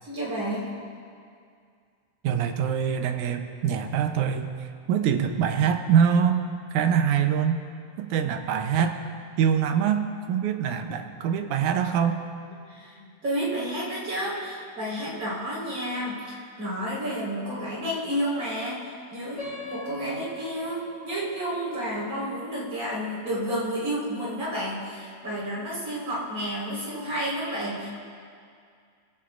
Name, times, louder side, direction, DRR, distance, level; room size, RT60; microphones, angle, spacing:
voice 1, 0.0-0.7 12.7-27.9, equal, 30° right, -6 dB, 5.1 m, -31 dB
voice 2, 2.2-4.5 4.9-6.5 6.7-7.6 8.0-9.0 9.4-12.2, right 8 dB, 70° right, 6 dB, 2.0 m, -24 dB
sound 1, 19.4-24.3, right 1 dB, 35° left, 2.3 m, -41 dB
22.0 x 17.0 x 2.5 m, 2.2 s
omnidirectional pair, 4.0 m